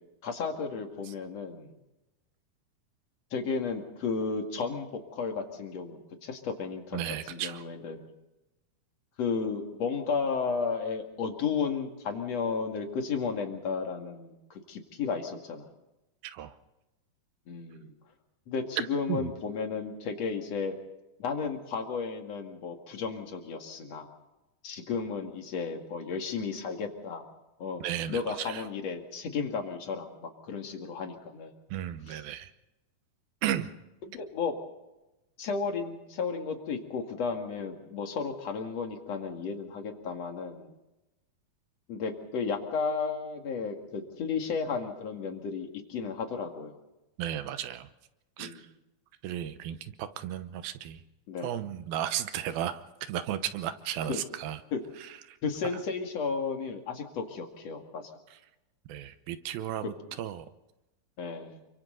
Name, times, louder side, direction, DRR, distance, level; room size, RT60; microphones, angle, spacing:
voice 1, 0.2-1.7 3.3-8.1 9.2-15.7 17.5-17.9 18.5-20.7 21.2-24.1 24.6-27.2 27.6-27.8 28.1-31.5 32.1-32.2 34.0-34.5 35.4-40.7 41.9-46.8 48.4-48.6 51.3-51.5 54.1-54.2 54.7-54.8 55.4-58.1 61.2-61.6, left 5 dB, 50° left, 4 dB, 3.0 m, -33 dB
voice 2, 6.9-7.6 16.2-16.5 19.1-19.3 27.8-28.7 31.7-32.5 33.4-33.7 47.2-47.9 48.4-48.7 49.2-51.0 51.4-54.6 55.0-55.4 58.3-58.4 58.9-60.5, right 11 dB, 75° right, 11 dB, 2.7 m, -34 dB
28.5 x 24.5 x 4.0 m, 0.97 s
omnidirectional pair, 4.4 m